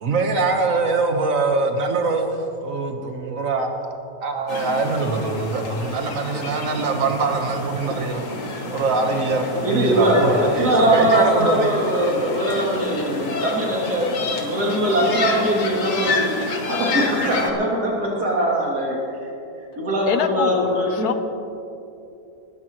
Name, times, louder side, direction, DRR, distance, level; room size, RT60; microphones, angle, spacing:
voice 1, 0.0-2.3 2.6-8.2 8.7-11.8, right 3 dB, 60° right, 4 dB, 1.6 m, -23 dB
sound 1, 4.5-17.5, left 3 dB, 55° left, 1.7 m, -29 dB
voice 2, 9.6-14.1 14.4-16.4 16.7-19.0 19.8-21.1, right 1 dB, 85° right, -3 dB, 3.4 m, -21 dB
voice 3, 20.0-21.2, left 7 dB, 80° left, 9 dB, 1.3 m, -25 dB
20.0 x 15.0 x 3.1 m, 2.8 s
omnidirectional pair, 1.6 m